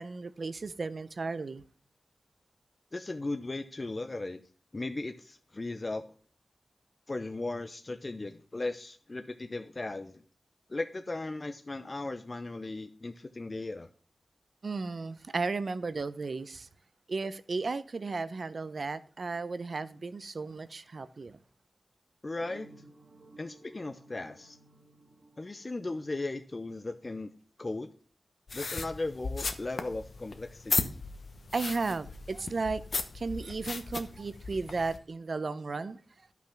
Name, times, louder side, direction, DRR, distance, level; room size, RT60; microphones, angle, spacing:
voice 1, 0.0-1.6 14.6-16.7 17.1-21.4 31.5-32.8 33.1-36.0, right 3 dB, 55° right, 0.6 m, -34 dB
voice 2, 2.9-4.4 4.7-6.1 7.1-10.2 10.7-13.9 22.2-22.7 23.4-24.6 25.4-27.3 27.6-27.9 28.5-30.9, left 2 dB, 35° left, 0.6 m, -37 dB
sound 1, 22.4-27.1, right 2 dB, 75° right, 1.9 m, -57 dB
sound 2, 28.5-35.0, left 4 dB, 60° left, 1.0 m, -36 dB
11.5 x 5.9 x 5.8 m
wide cardioid pair, 105°, 0 cm